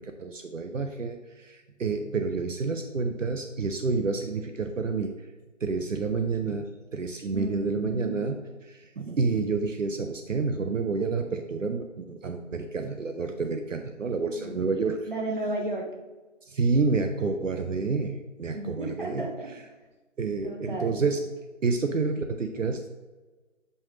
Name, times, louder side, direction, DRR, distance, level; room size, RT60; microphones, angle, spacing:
voice 1, 0.0-5.2 5.6-8.4 8.6-15.1 16.4-19.3 20.2-21.3 21.6-22.9, right 4 dB, 75° right, 6 dB, 0.7 m, -29 dB
voice 2, 7.3-8.4 14.3-14.5 15.1-16.0 18.5-19.6 20.4-21.0, right 1 dB, 40° right, 0 dB, 1.2 m, -33 dB
6.8 x 5.6 x 3.1 m, 1.3 s
figure-of-eight pair, 175°, 38 cm